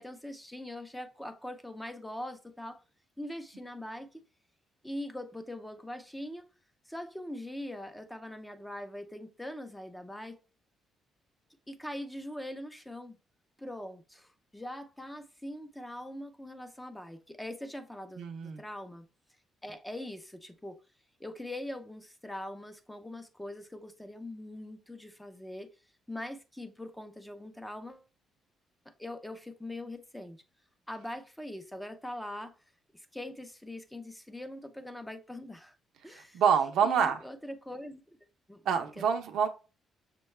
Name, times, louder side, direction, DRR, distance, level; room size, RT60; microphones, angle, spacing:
voice 1, 0.0-2.8 3.2-4.2 4.8-6.5 6.9-10.4 11.7-13.2 13.6-19.0 19.6-20.8 21.2-25.7 26.1-28.0 29.0-30.4 30.9-32.5 32.9-35.8 36.0-36.4 36.8-38.0 38.5-38.6 39.0-39.1, left 1 dB, 5° left, 0.6 m, -42 dB
voice 2, 18.2-18.6 36.1-37.2 38.7-39.5, right 7 dB, 80° right, 0.6 m, -27 dB
6.2 x 2.2 x 3.2 m
cardioid pair, 90°, 0 cm